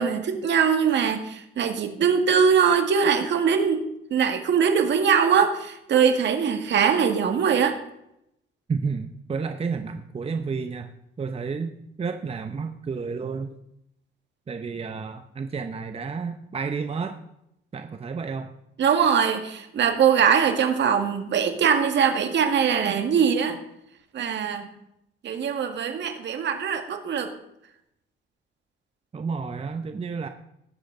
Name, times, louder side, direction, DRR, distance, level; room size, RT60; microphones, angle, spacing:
voice 1, 0.0-3.9 4.1-7.8 18.8-23.6 24.1-24.7 25.2-27.3, right 7 dB, 65° right, 6 dB, 1.8 m, -22 dB
voice 2, 8.7-13.5 14.5-17.2 17.7-18.5 29.1-30.3, right 5 dB, 30° right, 7 dB, 0.8 m, -31 dB
18.0 x 7.7 x 3.9 m, 0.80 s
cardioid pair, 90°, 20 cm